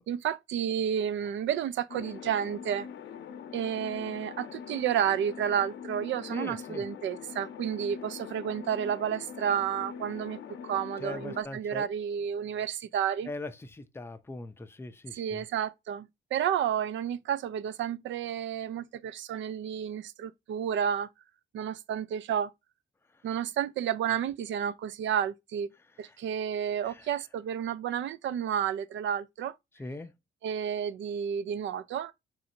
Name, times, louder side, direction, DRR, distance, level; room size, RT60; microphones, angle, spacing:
voice 1, 0.1-2.9 3.5-13.3 15.1-21.1 21.5-22.5 23.2-25.7 26.0-29.5 30.4-32.1, right 9 dB, 70° right, 0.4 m, -31 dB
sound 1, 1.9-11.4, left 8 dB, 65° left, 0.6 m, -43 dB
voice 2, 6.3-6.9 11.0-11.9 13.3-15.5 26.0-26.2 26.8-27.1 29.8-30.1, left 2 dB, 10° left, 0.4 m, -41 dB
4.0 x 2.6 x 4.2 m
cardioid pair, 120°, 20 cm